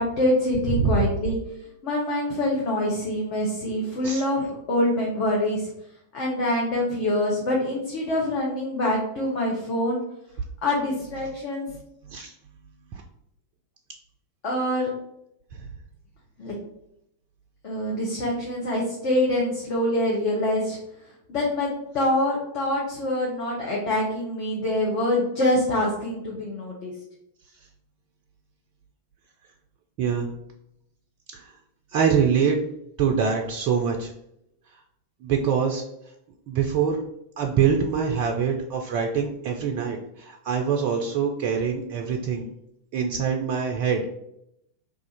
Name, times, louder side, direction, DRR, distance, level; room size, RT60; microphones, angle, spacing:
voice 1, 0.0-1.4 1.8-5.7 6.1-10.0 10.6-11.7 14.4-14.9 16.4-16.5 17.6-20.8 21.3-21.7 21.9-26.9, left 1 dB, 45° left, -3 dB, 0.8 m, -25 dB
voice 2, 0.7-1.1 4.0-4.2 11.7-12.3 12.9-13.0 15.5-15.7 30.0-30.3 31.3-31.5 31.9-32.6 33.0-34.1 35.2-35.8 36.5-37.0 37.4-42.5 42.9-44.1, right 6 dB, 45° right, 3 dB, 0.3 m, -24 dB
2.4 x 2.4 x 4.0 m, 0.80 s
figure-of-eight pair, 90°, 0 cm